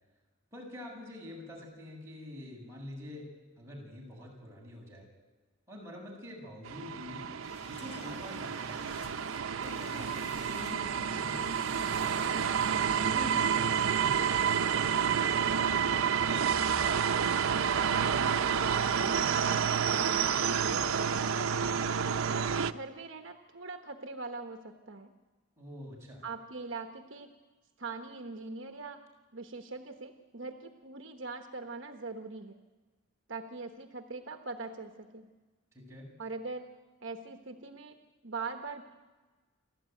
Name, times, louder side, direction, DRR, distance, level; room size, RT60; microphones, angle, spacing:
voice 1, 0.5-3.3 3.6-5.1 5.7-7.3 7.7-9.0 9.6-12.4 12.9-15.4 25.6-26.2 35.7-36.1, left 1 dB, 15° right, -3 dB, 7.3 m, -46 dB
sound 1, 6.6-22.7, right 7 dB, 80° right, 0.7 m, -29 dB
sound 2, 7.4-12.7, left 3 dB, 55° left, 2.1 m, -53 dB
voice 2, 17.0-21.5 22.3-25.1 26.2-27.3 27.8-29.0 29.3-32.6 33.3-35.3 36.2-36.7 37.0-38.8, right 3 dB, 65° right, 5 dB, 1.2 m, -42 dB
29.0 x 13.0 x 9.2 m, 1.3 s
head